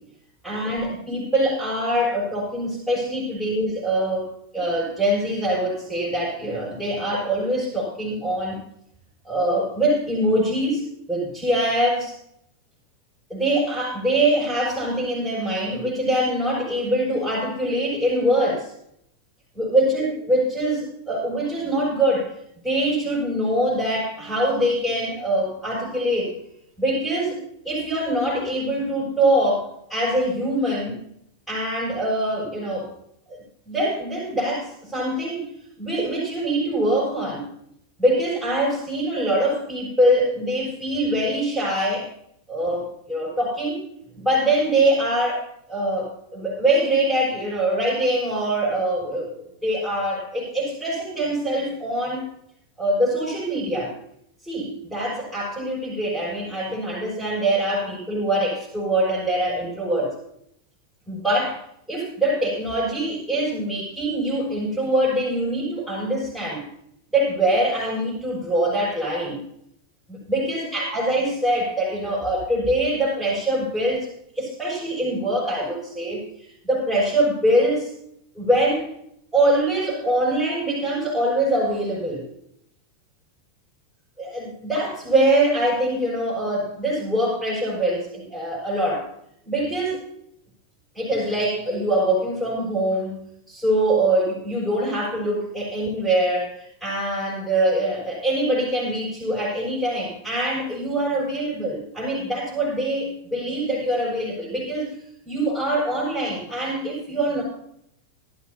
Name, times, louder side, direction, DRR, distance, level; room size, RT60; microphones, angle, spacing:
voice 1, 0.4-8.6 9.2-12.1 13.3-18.7 19.5-22.3 22.6-26.3 26.8-27.4 27.6-31.0 31.5-32.9 33.3-35.5 35.8-37.5 38.0-42.1 42.5-43.8 44.1-49.3 49.6-52.3 52.8-53.9 54.4-60.1 61.1-61.6 61.9-66.6 67.1-69.4 70.1-74.1 74.4-77.9 78.3-78.9 79.3-82.2 84.2-89.1 89.4-90.0 90.9-104.9 105.2-107.4, right 1 dB, 5° right, -7 dB, 7.0 m, -23 dB
18.5 x 13.0 x 2.9 m, 0.73 s
figure-of-eight pair, 90°, 0 cm